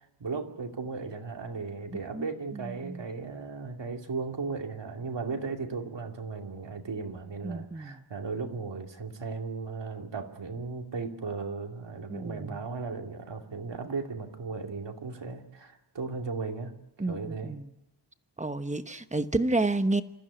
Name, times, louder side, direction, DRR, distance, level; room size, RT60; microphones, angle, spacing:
voice 1, 0.2-16.8 17.1-17.6, right 4 dB, 75° right, 2.6 m, -36 dB
voice 2, 1.9-3.0 7.4-8.0 12.1-12.6 17.0-17.7 18.4-20.0, right 2 dB, 15° right, 1.1 m, -31 dB
27.0 x 14.5 x 9.8 m
wide cardioid pair, 110°, 43 cm